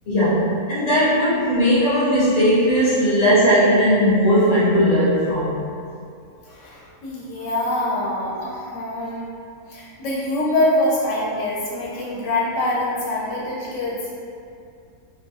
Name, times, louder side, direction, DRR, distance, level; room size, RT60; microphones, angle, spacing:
voice 1, 0.1-5.6, equal, 50° left, -10 dB, 0.5 m, -18 dB
voice 2, 6.4-9.3 9.7-14.1, left 1 dB, 65° left, -6 dB, 0.9 m, -24 dB
2.5 x 2.2 x 2.6 m, 2.4 s
omnidirectional pair, 1.5 m